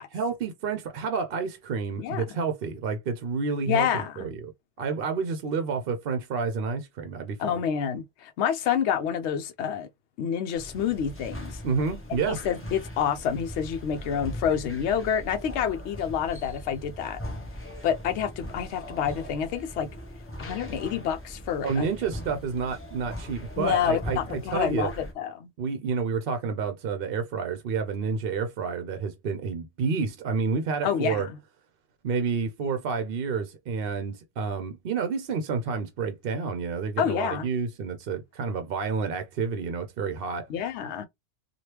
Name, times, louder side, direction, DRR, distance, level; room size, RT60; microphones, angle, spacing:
voice 1, 0.1-4.5 4.8-7.6 11.6-12.4 21.6-24.9 25.6-31.3 32.0-40.5, right 5 dB, 60° right, 0.7 m, -29 dB
voice 2, 2.0-2.4 3.7-4.3 7.4-9.9 10.2-11.6 12.3-17.2 17.8-19.9 20.4-21.9 23.6-25.5 30.8-31.4 37.0-37.5 40.5-41.1, left 8 dB, 75° left, 0.8 m, -28 dB
sound 1, 10.5-25.1, equal, 15° left, 0.8 m, -40 dB
2.9 x 2.4 x 3.2 m
omnidirectional pair, 1.2 m